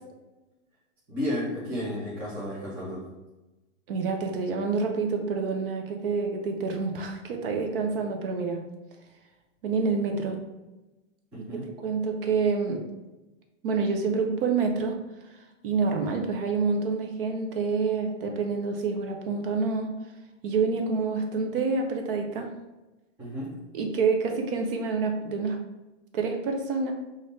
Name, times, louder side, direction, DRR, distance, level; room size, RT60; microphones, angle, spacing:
voice 1, 1.1-3.0 11.3-11.7 23.2-23.5, left 1 dB, 5° right, -8 dB, 0.4 m, -32 dB
voice 2, 3.9-8.6 9.6-10.4 11.5-12.8 13.6-15.0 15.6-19.9 20.4-22.5 23.7-25.6 26.1-26.9, right 4 dB, 45° right, 3 dB, 0.6 m, -27 dB
3.2 x 2.6 x 3.9 m, 1.1 s
hypercardioid pair, 155°, 38 cm